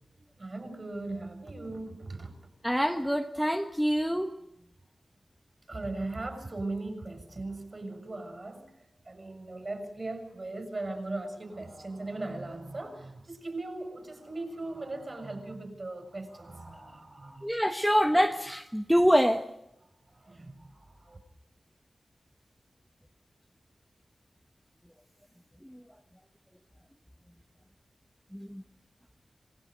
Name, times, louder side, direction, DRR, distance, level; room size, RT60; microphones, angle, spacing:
voice 1, 0.4-2.3 5.7-8.7 9.1-17.5 18.0-18.3 20.1-21.2, right 2 dB, 40° right, 6.6 m, -39 dB
voice 2, 2.6-4.3 17.4-19.4, equal, ahead, 1.2 m, -25 dB
26.5 x 20.5 x 5.2 m
wide cardioid pair, 115°, 0 cm